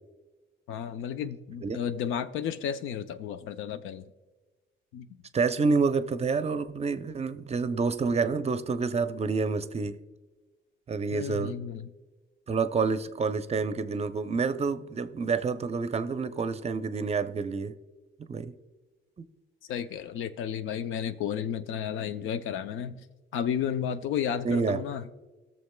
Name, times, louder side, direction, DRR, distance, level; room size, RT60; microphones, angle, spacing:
voice 1, 0.7-4.1 4.9-5.1 11.1-11.9 19.7-23.0 23.3-25.0, left 8 dB, 85° left, 11 dB, 0.5 m, -32 dB
voice 2, 5.3-10.0 10.9-11.6 12.5-17.7 18.3-18.5 19.2-19.3 24.4-24.8, right 4 dB, 30° right, 11 dB, 0.5 m, -28 dB
20.0 x 6.7 x 2.2 m, 1.2 s
cardioid pair, 90°, 20 cm